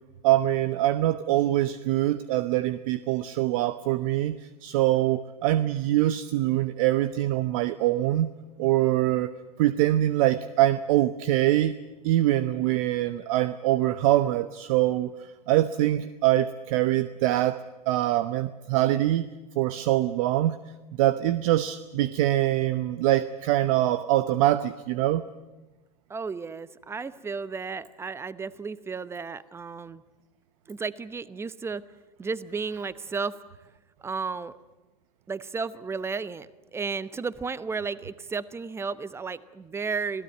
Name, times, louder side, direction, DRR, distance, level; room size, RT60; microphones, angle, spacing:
voice 1, 0.2-8.3 8.6-9.3 9.6-11.7 12.0-19.3 19.5-20.6 21.0-25.2, right 14 dB, 60° right, 14 dB, 0.9 m, -24 dB
voice 2, 26.1-30.0 30.7-31.8 32.2-33.4 34.0-34.5 35.3-40.2, right 5 dB, 10° right, 17 dB, 0.9 m, -33 dB
26.5 x 17.0 x 9.2 m, 1.1 s
hypercardioid pair, 115°, 20 cm